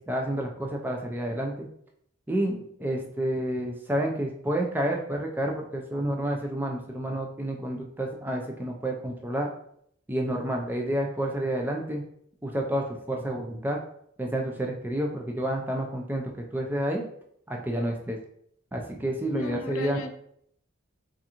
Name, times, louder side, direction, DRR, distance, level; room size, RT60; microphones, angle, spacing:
voice 1, 0.0-1.7 2.3-9.5 10.1-12.0 12.4-13.8 14.2-17.0 17.5-18.2 18.7-20.0, right 1 dB, 10° right, 1 dB, 0.3 m, -29 dB
voice 2, 19.3-20.1, left 3 dB, 90° left, 6 dB, 0.4 m, -35 dB
3.5 x 2.5 x 2.8 m, 0.69 s
head